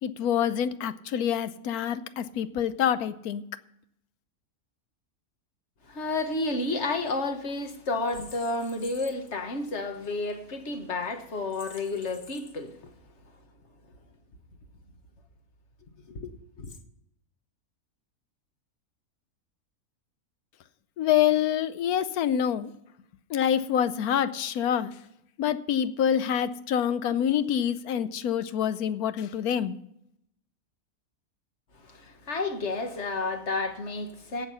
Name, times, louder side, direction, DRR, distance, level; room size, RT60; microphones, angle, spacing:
voice 1, 0.0-3.4 21.0-22.7 23.3-24.9 25.4-29.8, left 9 dB, 80° left, 1.2 m, -26 dB
voice 2, 5.9-12.9 16.1-16.7 31.7-34.5, left 2 dB, 50° left, 1.6 m, -31 dB
17.0 x 6.6 x 5.6 m
omnidirectional pair, 1.6 m